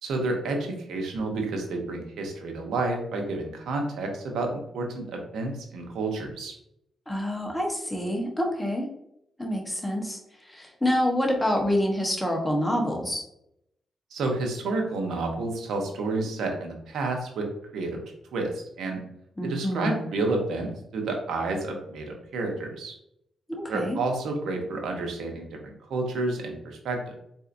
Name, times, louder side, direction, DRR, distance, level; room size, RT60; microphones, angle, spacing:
voice 1, 0.0-6.5 14.1-17.5 17.7-18.0 18.3-19.0 19.4-22.9 23.7-27.2, right 3 dB, 85° right, 2 dB, 0.8 m, -30 dB
voice 2, 7.1-8.9 9.4-10.2 10.5-13.3 19.4-20.0 23.5-24.0, left 1 dB, 10° left, 0 dB, 1.0 m, -27 dB
4.2 x 2.7 x 2.5 m, 0.76 s
cardioid pair, 75°, 0 cm